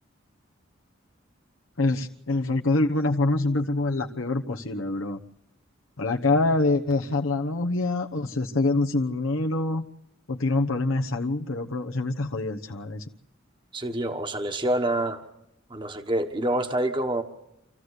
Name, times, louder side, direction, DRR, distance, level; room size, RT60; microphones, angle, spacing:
voice 1, 1.8-5.2 6.0-9.8 10.3-13.0, left 2 dB, 85° left, 3 dB, 1.1 m, -25 dB
voice 2, 13.7-15.2 15.7-17.2, right 1 dB, 25° right, 5 dB, 1.3 m, -27 dB
27.0 x 15.0 x 8.1 m, 0.83 s
head